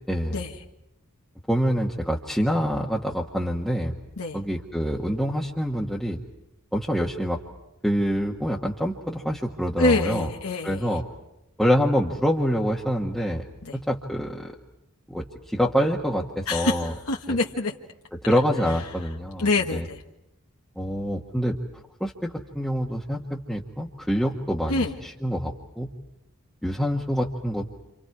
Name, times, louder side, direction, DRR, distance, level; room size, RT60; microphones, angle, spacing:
voice 1, 0.1-0.4 1.5-4.0 4.3-6.2 6.7-7.4 7.8-10.3 10.6-11.0 11.6-13.4 13.7-14.5 15.1-16.9 17.3-17.4 18.3-19.8 20.8-21.6 22.0-25.9 26.6-27.8, equal, ahead, -3 dB, 1.4 m, -26 dB
voice 2, 9.8-10.9 13.6-13.8 16.5-17.7 19.4-20.0 24.7-24.9, left 2 dB, 75° left, -1 dB, 1.6 m, -25 dB
30.0 x 28.0 x 4.8 m, 0.90 s
head